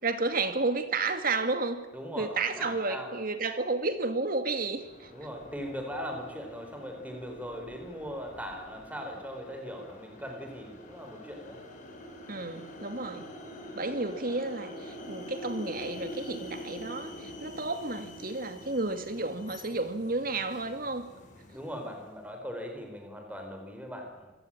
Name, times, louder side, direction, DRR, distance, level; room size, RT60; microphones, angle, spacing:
voice 1, 0.0-1.8 2.2-5.1 12.3-13.3 13.7-21.1, right 3 dB, 45° right, 9 dB, 2.4 m, -31 dB
voice 2, 1.9-3.1 5.1-11.6 21.5-24.3, equal, 5° right, 4 dB, 4.1 m, -40 dB
sound 1, 4.7-22.2, left 1 dB, 40° left, 5.3 m, -46 dB
26.0 x 17.5 x 8.9 m, 1.2 s
head